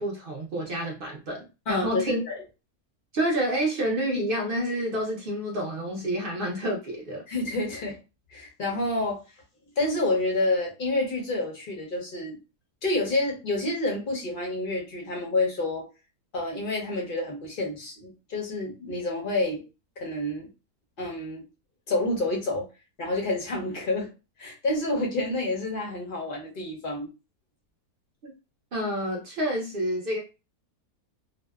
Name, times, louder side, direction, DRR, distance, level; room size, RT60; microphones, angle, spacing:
voice 1, 0.0-2.2 3.1-7.2 28.2-28.3 28.7-30.2, right 1 dB, 60° right, -1 dB, 0.5 m, -29 dB
voice 2, 1.7-2.4 7.3-8.0 8.3-9.2 9.8-12.4 12.8-15.9 16.3-19.6 20.0-20.5 21.0-21.4 21.9-22.7 23.0-24.1 24.4-27.1, left 2 dB, 55° left, -1 dB, 0.6 m, -28 dB
2.6 x 2.1 x 2.2 m, 0.29 s
omnidirectional pair, 1.7 m